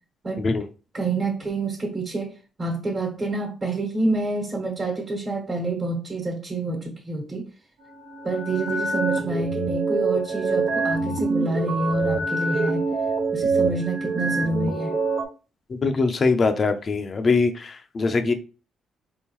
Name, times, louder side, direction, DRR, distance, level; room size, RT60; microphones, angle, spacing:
voice 1, 0.9-7.5 8.2-12.8 13.3-15.0, right 2 dB, 30° right, 1.4 m, -27 dB
sound 1, 7.8-15.2, right 3 dB, 65° right, 1.1 m, -25 dB
voice 2, 15.7-18.3, left 4 dB, 40° left, 0.6 m, -22 dB
3.7 x 3.6 x 3.0 m
cardioid pair, 90°, 0 cm